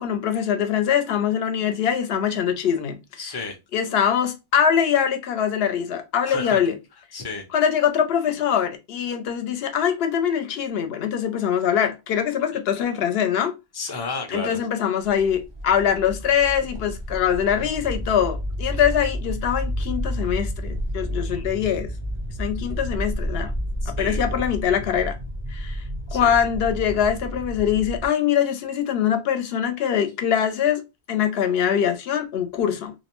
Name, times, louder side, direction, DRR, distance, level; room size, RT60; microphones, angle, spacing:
voice 1, 0.0-3.0 3.7-6.7 7.5-13.6 14.3-21.9 22.4-23.5 23.9-25.1 25.5-25.8 26.1-30.8 31.1-32.9, left 8 dB, 70° left, 0.7 m, -23 dB
voice 2, 3.2-3.6 6.2-6.6 7.1-7.4 12.5-12.6 13.7-14.6 18.7-18.8 21.2-21.5 23.8-24.2 26.1-26.4, left 3 dB, 30° left, 0.4 m, -32 dB
sound 1, 15.0-28.1, equal, 35° right, 0.4 m, -30 dB
2.5 x 2.0 x 2.9 m
omnidirectional pair, 1.1 m